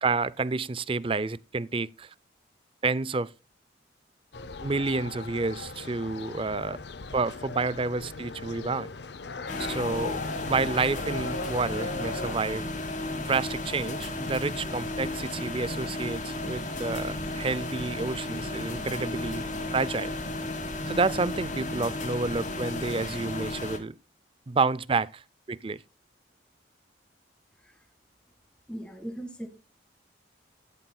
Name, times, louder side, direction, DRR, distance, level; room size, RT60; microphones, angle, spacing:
voice 1, 0.0-2.1 2.8-3.3 4.6-6.8 7.1-8.9 9.6-10.2 10.5-12.7 13.2-19.5 19.7-20.1 20.9-23.9 24.5-25.2 25.5-25.8, right 3 dB, 30° right, 0.5 m, -29 dB
sound 1, 4.3-12.4, left 3 dB, 60° left, 0.7 m, -38 dB
sound 2, 9.5-23.8, left 2 dB, 40° left, 3.0 m, -34 dB
voice 2, 28.7-29.5, right 1 dB, 5° left, 2.0 m, -38 dB
15.0 x 12.5 x 2.3 m
head